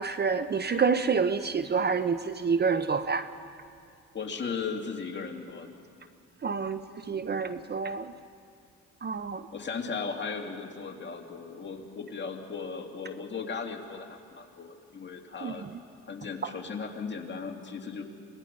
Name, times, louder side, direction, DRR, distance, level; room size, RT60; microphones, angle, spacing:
voice 1, 0.0-3.3 6.4-6.8 7.1-8.1 9.0-9.4 15.4-15.5 16.4-16.5, right 5 dB, 35° right, 11 dB, 0.7 m, -28 dB
voice 2, 4.1-5.8 9.5-15.7 16.0-18.0, left 5 dB, 35° left, 2 dB, 2.4 m, -37 dB
26.0 x 19.5 x 5.3 m, 2.3 s
cardioid pair, 90°, 30 cm